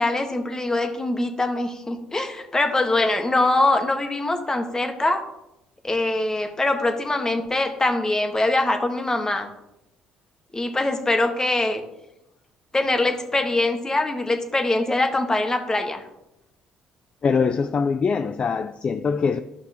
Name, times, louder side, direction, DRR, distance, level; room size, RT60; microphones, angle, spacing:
voice 1, 0.0-5.2 5.8-9.5 10.5-11.8 12.7-16.0, left 2 dB, 20° left, 1.4 m, -23 dB
voice 2, 17.2-19.4, left 5 dB, 40° left, 0.4 m, -23 dB
12.0 x 5.6 x 2.9 m
supercardioid pair, 60°, 3 cm